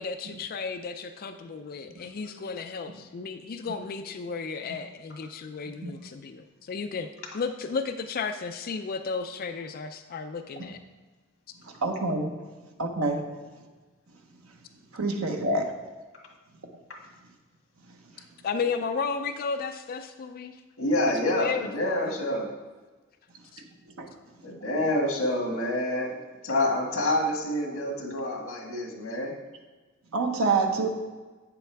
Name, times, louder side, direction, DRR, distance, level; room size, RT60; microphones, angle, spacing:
voice 1, 0.0-7.1 7.3-10.8 18.4-20.6 21.1-22.1 23.5-23.6, left 5 dB, 45° left, 8 dB, 0.4 m, -33 dB
voice 2, 11.8-12.3 12.8-13.2 14.9-15.7 24.0-24.1 30.1-30.9, right 3 dB, 90° right, 3 dB, 1.0 m, -26 dB
voice 3, 20.8-22.5 24.4-26.2 26.4-29.3, left 1 dB, 75° left, 0 dB, 1.7 m, -27 dB
8.4 x 7.0 x 3.4 m, 1.3 s
head